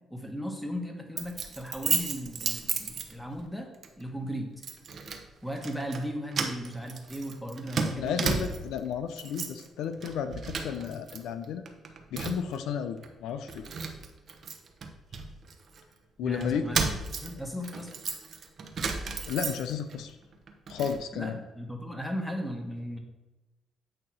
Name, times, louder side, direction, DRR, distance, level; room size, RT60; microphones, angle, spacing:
voice 1, 0.1-3.7 4.0-4.5 5.4-8.6 16.2-16.8 17.2-17.9 21.1-23.0, equal, 5° left, 3 dB, 1.3 m, -36 dB
Keys jangling, 1.2-3.5 3.8-4.0 4.6-5.2 5.6-6.0 6.3-8.8 9.1-9.7 10.0-11.2 11.4-12.6 13.0-13.1 13.5-15.8 16.4-20.0 20.3-21.0, right 5 dB, 55° right, 0.9 m, -33 dB
voice 2, 7.9-11.6 12.1-13.6 16.2-16.6 19.3-20.2 20.7-21.3, left 7 dB, 85° left, 9 dB, 0.5 m, -33 dB
8.8 x 3.0 x 6.1 m, 1.0 s
cardioid pair, 90°, 0 cm